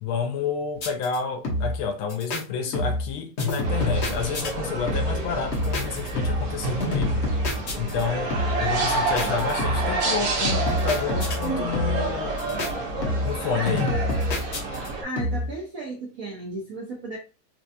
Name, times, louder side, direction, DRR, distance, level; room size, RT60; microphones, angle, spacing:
voice 1, 0.0-7.2 7.8-12.6 13.2-14.0, left 6 dB, 75° left, 1.4 m, -30 dB
sound 1, 0.8-1.2 1.4-1.8 2.1-2.4 2.7-3.1 3.4-4.5 4.9-5.3 5.5-6.5 6.8-8.0 8.3-8.7 9.2-10.0 10.4-11.5 11.7-12.1 12.4-12.7 13.0-13.4 13.7-14.9 15.2-15.5, left 1 dB, 55° left, 0.8 m, -27 dB
sound 2, 3.6-15.0, right 2 dB, 55° right, 1.1 m, -29 dB
voice 2, 15.0-17.2, right 2 dB, 70° right, 0.8 m, -34 dB
4.4 x 2.3 x 2.6 m
omnidirectional pair, 2.4 m